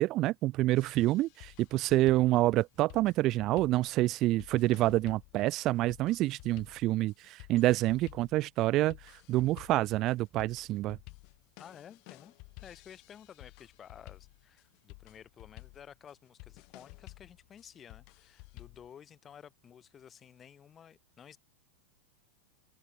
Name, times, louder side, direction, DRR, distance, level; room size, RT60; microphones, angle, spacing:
voice 1, 0.0-11.0, right 17 dB, 35° right, 0.5 m, -27 dB
sound 1, 0.8-18.9, left 34 dB, 45° left, 2.8 m, -53 dB
voice 2, 11.6-12.3 12.6-21.4, left 8 dB, 25° left, 3.4 m, -53 dB
figure-of-eight pair, 90°, 0 cm